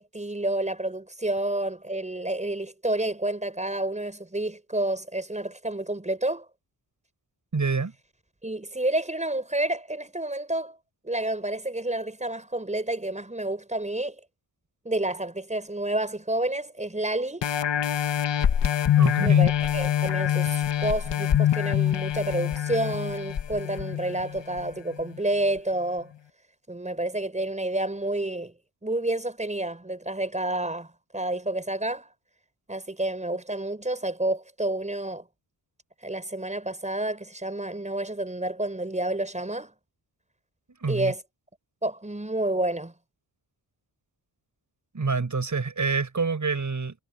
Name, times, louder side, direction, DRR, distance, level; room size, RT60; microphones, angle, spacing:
voice 1, 0.0-6.5 8.4-10.8 11.0-14.2 14.8-17.5 19.2-26.1 26.7-28.5 28.8-32.1 32.7-35.2 36.0-39.7 40.9-41.2 41.8-42.9, right 1 dB, 15° right, 6.2 m, -29 dB
voice 2, 7.5-7.9 19.0-19.5 40.8-41.1 44.9-47.0, right 4 dB, 40° right, 6.5 m, -27 dB
sound 1, 17.4-24.6 25.1-25.2, left 10 dB, 70° left, 1.2 m, -24 dB
wide cardioid pair, 135°, 45 cm